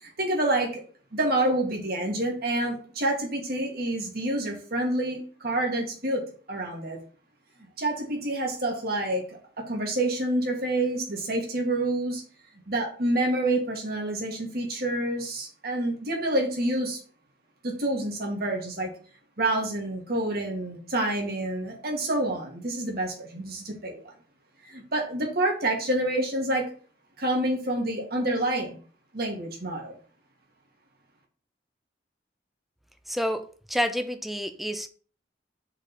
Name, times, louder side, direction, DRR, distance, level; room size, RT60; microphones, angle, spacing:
voice 1, 0.0-0.8 1.1-6.2 6.5-7.0 7.8-12.2 12.7-17.0 17.6-18.9 19.4-24.1 24.7-26.7 27.2-28.8 29.1-30.0, right 1 dB, 55° right, 1.8 m, -28 dB
voice 2, 33.1-34.9, equal, ahead, 0.5 m, -29 dB
5.1 x 4.0 x 5.8 m
head